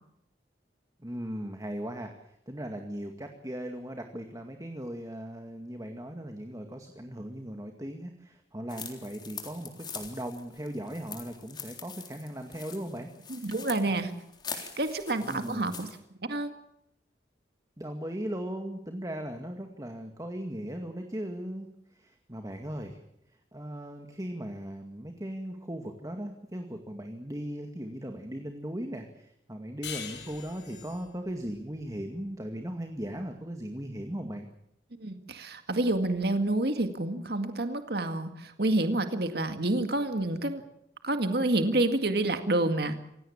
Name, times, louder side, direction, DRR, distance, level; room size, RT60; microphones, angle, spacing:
voice 1, 1.0-13.5 13.8-14.0 15.2-15.8 17.8-23.0 23.5-34.5, equal, 20° right, 5 dB, 2.1 m, -38 dB
sound 1, 8.7-16.0, left 6 dB, 25° left, 3.7 m, -44 dB
voice 2, 13.3-14.2 14.5-15.9 16.2-16.5 35.0-40.6 41.0-43.0, right 2 dB, 60° right, 8 dB, 2.0 m, -28 dB
sound 2, 29.8-33.0, left 8 dB, 80° left, 5.5 m, -44 dB
27.0 x 17.5 x 7.3 m, 0.79 s
head